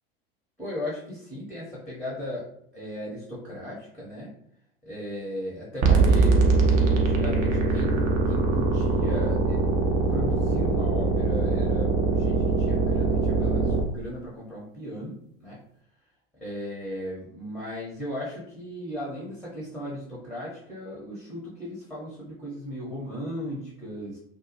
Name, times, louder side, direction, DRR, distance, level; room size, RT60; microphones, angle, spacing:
voice 1, 0.6-4.3 4.8-9.6 10.1-15.6 16.4-24.2, equal, ahead, -6 dB, 0.7 m, -36 dB
sound 1, 5.8-13.8, right 3 dB, 40° right, 0.5 m, -22 dB
2.2 x 2.1 x 2.7 m, 0.71 s
figure-of-eight pair, 80°, 30 cm